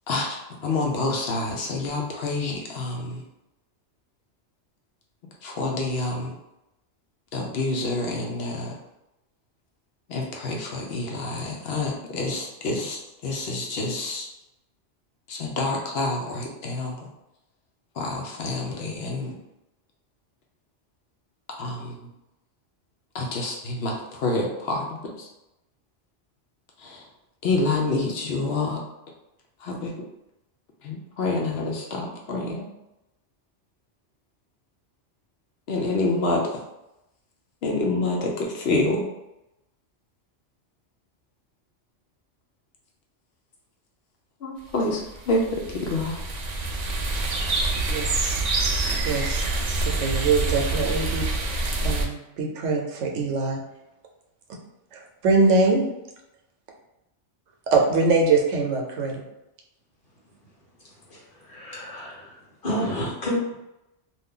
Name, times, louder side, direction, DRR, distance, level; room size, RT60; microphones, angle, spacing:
voice 1, 0.1-3.2 5.4-6.3 7.3-8.8 10.1-14.3 15.3-17.1 17.9-19.3 21.6-22.1 23.1-25.3 26.8-27.1 27.4-28.8 29.6-29.9 30.8-32.7 35.7-36.6 37.6-39.1 44.4-46.2, left 2 dB, 65° left, -1 dB, 0.8 m, -27 dB
sound 1, 45.0-52.1, right 2 dB, 60° right, 0.4 m, -26 dB
voice 2, 47.9-48.4 48.9-51.6 51.8-53.6 54.9-55.9 57.7-59.2, right 3 dB, 85° right, 0 dB, 1.0 m, -23 dB
voice 3, 60.8-62.4 62.6-63.5, equal, 50° left, -6 dB, 1.2 m, -30 dB
2.6 x 2.3 x 3.6 m, 0.91 s
omnidirectional pair, 1.2 m